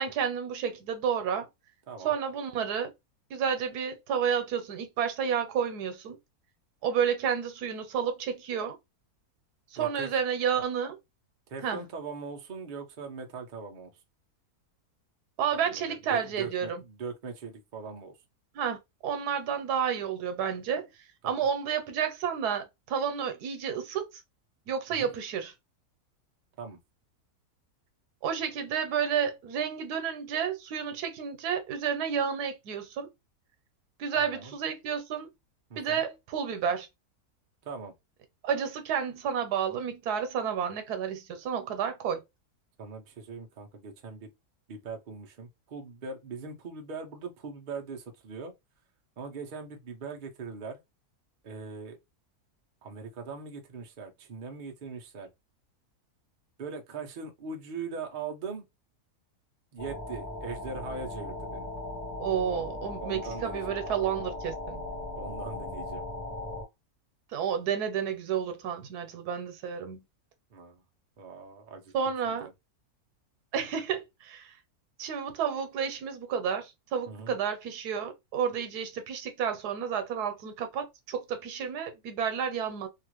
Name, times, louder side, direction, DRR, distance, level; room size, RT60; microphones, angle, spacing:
voice 1, 0.0-1.5 2.0-2.9 3.3-6.2 6.8-8.8 9.7-11.0 11.6-11.8 15.4-16.8 18.5-18.8 19.0-20.9 21.2-24.2 24.7-25.5 28.2-33.1 34.0-35.3 35.8-36.9 38.4-42.2 62.2-64.8 67.3-70.0 71.9-72.5 73.5-74.5 75.0-82.9, right 7 dB, 90° right, 1.2 m, -31 dB
voice 2, 9.8-10.1 11.5-13.9 15.5-18.1 21.2-21.5 24.9-25.1 26.6-26.8 34.2-34.6 35.7-36.0 37.6-37.9 42.8-44.3 44.7-48.5 49.2-50.8 51.4-52.0 52.8-55.3 56.6-58.7 59.7-61.7 63.0-63.8 65.2-66.1 70.5-70.8 71.2-72.5 77.1-77.3, right 4 dB, 50° right, 0.6 m, -41 dB
sound 1, 59.8-66.6, left 2 dB, 25° left, 1.2 m, -38 dB
2.8 x 2.4 x 3.0 m
omnidirectional pair, 1.6 m